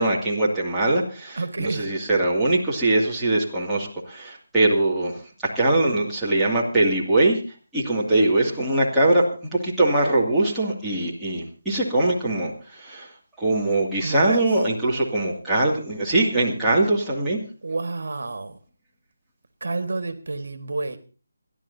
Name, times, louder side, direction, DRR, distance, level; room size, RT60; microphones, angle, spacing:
voice 1, 0.0-5.2 5.4-7.4 7.7-13.1 13.4-17.4, right 2 dB, 5° right, -9 dB, 2.4 m, -22 dB
voice 2, 1.4-1.9 14.0-14.4 17.6-18.6 19.6-21.0, right 3 dB, 70° right, 9 dB, 1.7 m, -29 dB
28.0 x 11.0 x 2.8 m, 0.35 s
figure-of-eight pair, 170°, 0 cm